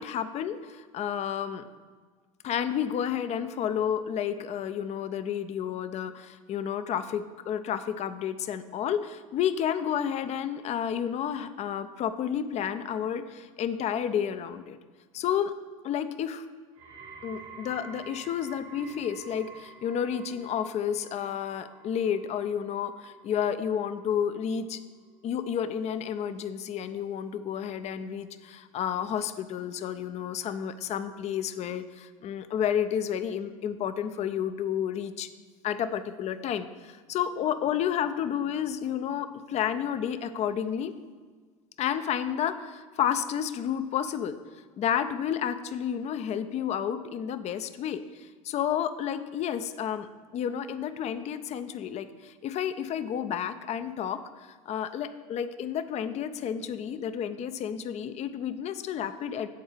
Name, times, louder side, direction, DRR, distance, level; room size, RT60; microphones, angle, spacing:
voice 1, 0.0-1.6 2.4-14.8 15.1-15.5 15.8-16.4 17.2-24.8 25.2-35.3 35.6-40.9 41.8-44.4 44.8-59.5, left 9 dB, 40° left, 11 dB, 0.5 m, -31 dB
sound 1, 16.8-27.9 28.2-28.7 29.4-29.5, right 5 dB, 60° right, 1.4 m, -50 dB
8.0 x 4.3 x 5.0 m, 1.5 s
hypercardioid pair, 75°, 18 cm